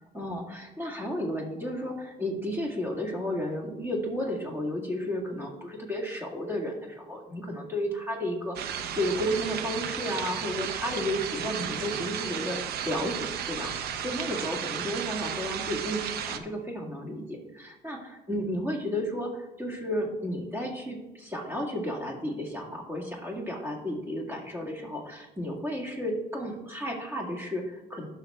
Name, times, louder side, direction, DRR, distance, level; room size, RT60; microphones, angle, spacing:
voice 1, 0.1-28.1, equal, 15° right, -1 dB, 1.9 m, -33 dB
sound 1, 8.6-16.4, right 8 dB, 70° right, 0.6 m, -34 dB
12.0 x 6.0 x 2.3 m, 1.1 s
cardioid pair, 110°, 17 cm